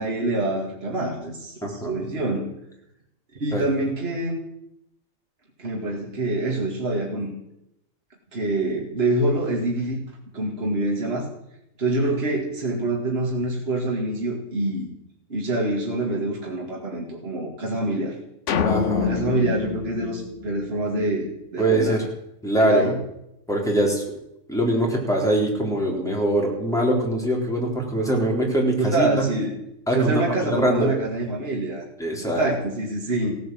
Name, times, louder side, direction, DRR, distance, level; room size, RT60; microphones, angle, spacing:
voice 1, 0.0-2.5 3.3-4.4 5.6-7.4 8.3-10.0 10.3-11.3 11.8-14.9 15.3-18.1 19.0-22.0 22.6-23.0 28.8-29.6 29.9-31.8 32.2-33.4, right 2 dB, 50° right, -1 dB, 2.5 m, -26 dB
voice 2, 1.6-2.1 3.5-3.6 18.6-19.1 21.6-22.1 22.4-22.9 23.5-24.0 24.5-29.3 29.9-30.9 32.0-32.5, right 1 dB, ahead, -2 dB, 3.7 m, -23 dB
sound 1, 18.5-21.0, left 6 dB, 65° left, 1.2 m, -26 dB
16.5 x 9.6 x 7.7 m, 0.83 s
omnidirectional pair, 1.4 m